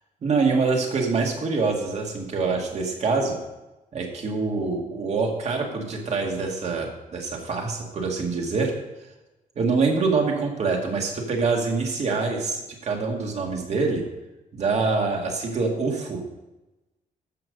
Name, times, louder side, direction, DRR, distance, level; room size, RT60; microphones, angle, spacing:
voice 1, 0.2-3.4 3.9-8.7 9.6-14.0 14.5-16.2, right 4 dB, 50° right, 1 dB, 2.3 m, -25 dB
14.0 x 5.9 x 5.3 m, 1.0 s
cardioid pair, 130°, 15 cm